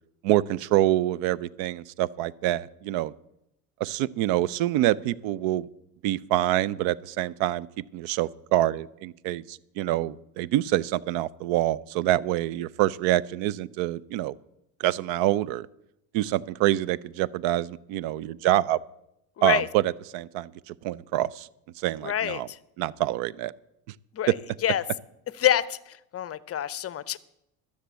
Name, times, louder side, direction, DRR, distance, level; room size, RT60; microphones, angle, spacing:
voice 1, 0.2-3.1 3.8-5.7 6.0-7.7 7.9-14.3 14.8-15.7 16.1-18.8 19.4-21.5 21.8-22.5 22.8-23.5 24.3-24.4, right 14 dB, 65° right, 23 dB, 0.6 m, -26 dB
voice 2, 19.4-19.7 22.0-22.6 24.1-24.3 24.6-24.8 25.4-27.2, left 11 dB, 30° left, 19 dB, 0.6 m, -27 dB
13.0 x 6.8 x 8.1 m, 0.84 s
supercardioid pair, 85°, 48 cm